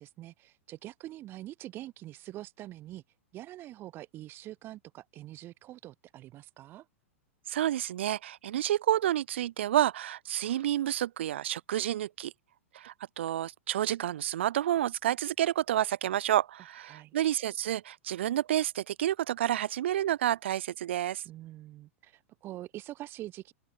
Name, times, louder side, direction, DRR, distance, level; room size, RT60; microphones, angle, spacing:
voice 1, 0.0-3.0 3.3-6.9 16.9-17.1 21.2-23.5, right 15 dB, 30° right, 4.2 m, -45 dB
voice 2, 7.5-12.3 12.7-21.2, right 12 dB, 55° right, 4.3 m, -29 dB
open air
figure-of-eight pair, 100°, 7 cm